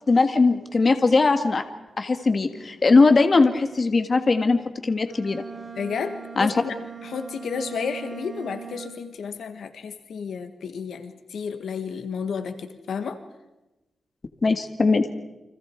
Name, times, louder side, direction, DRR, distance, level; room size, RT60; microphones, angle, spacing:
voice 1, 0.1-1.6 2.0-5.4 6.4-6.6 14.4-15.1, left 3 dB, 35° left, 8 dB, 1.8 m, -20 dB
Bowed string instrument, 5.1-9.2, right 7 dB, 35° right, 3.7 m, -40 dB
voice 2, 5.7-6.7 7.0-13.2, left 6 dB, 80° left, 9 dB, 1.7 m, -32 dB
30.0 x 25.0 x 4.7 m, 1.0 s
wide cardioid pair, 115°, 0 cm